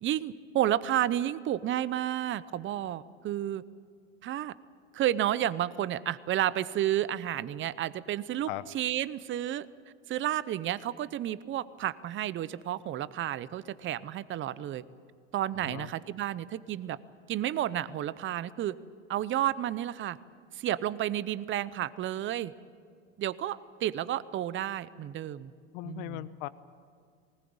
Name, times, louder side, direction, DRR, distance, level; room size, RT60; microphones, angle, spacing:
voice 1, 0.0-3.6 4.2-4.5 4.9-8.5 8.7-9.7 10.1-14.8 15.3-17.0 17.3-18.7 19.1-20.2 20.5-22.5 23.2-25.5 25.8-26.2, right 12 dB, 35° right, 17 dB, 0.7 m, -31 dB
voice 2, 25.7-26.5, left 16 dB, 65° left, 15 dB, 1.0 m, -38 dB
19.5 x 19.5 x 8.8 m, 2.1 s
supercardioid pair, 105°, 36 cm